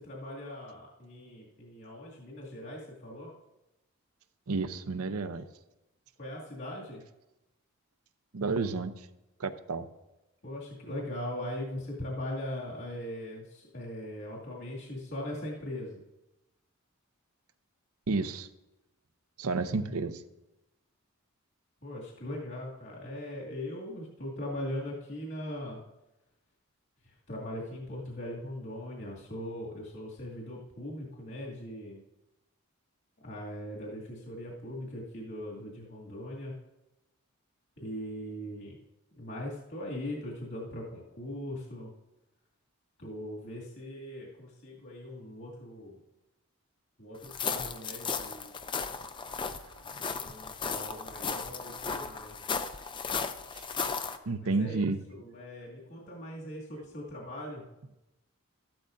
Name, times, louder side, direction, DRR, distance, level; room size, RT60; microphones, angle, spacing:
voice 1, 0.0-3.3 6.2-7.0 10.4-16.0 21.8-25.8 27.0-32.0 33.2-36.5 37.8-38.8 39.2-41.9 43.0-46.0 47.0-48.5 50.2-52.4 54.4-57.6, left 1 dB, 55° left, -5 dB, 2.4 m, -40 dB
voice 2, 4.5-5.5 8.3-9.1 9.4-9.9 18.1-18.5 19.4-20.2 49.3-50.1 53.5-53.6 54.3-55.0, right 3 dB, 75° right, 10 dB, 0.7 m, -31 dB
sound 1, 47.2-54.2, left 5 dB, 20° left, 0.5 m, -35 dB
13.5 x 12.0 x 2.6 m, 0.96 s
head